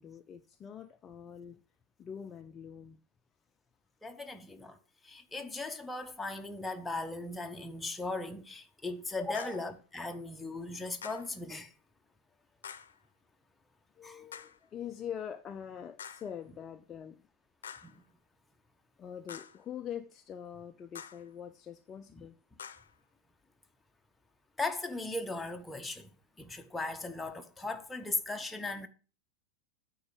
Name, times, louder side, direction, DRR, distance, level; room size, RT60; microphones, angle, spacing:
voice 1, 0.0-1.6 2.0-3.0 14.0-17.3 19.0-22.4, left 8 dB, 25° left, 0.5 m, -44 dB
voice 2, 4.0-4.8 5.0-11.7 14.0-14.2 17.8-18.0 22.2-22.3 24.6-26.1 26.4-28.9, left 3 dB, 10° left, 1.0 m, -38 dB
sound 1, 9.3-9.7 11.0-11.4 12.6-13.0 14.3-14.6 16.0-16.3 17.6-18.0 19.3-19.6 20.9-21.3 22.6-23.0, left 7 dB, 65° left, 0.8 m, -47 dB
8.8 x 4.7 x 6.9 m
figure-of-eight pair, 90°, 0 cm